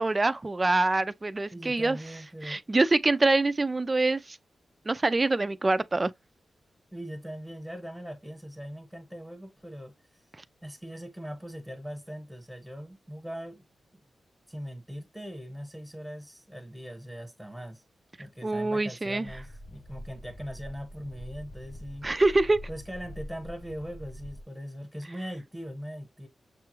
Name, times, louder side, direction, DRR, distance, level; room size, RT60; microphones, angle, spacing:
voice 1, 0.0-2.0 2.4-4.4 4.9-6.1 18.4-19.3 22.0-22.6, right 2 dB, 25° right, 0.3 m, -25 dB
voice 2, 1.5-2.6 6.9-10.2 10.6-13.6 13.9-14.0 14.5-17.8 18.2-22.1 22.7-26.3, equal, ahead, 1.0 m, -40 dB
sound 1, 19.2-24.4, equal, 40° left, 0.6 m, -44 dB
6.7 x 2.3 x 3.0 m
wide cardioid pair, 120°, 0 cm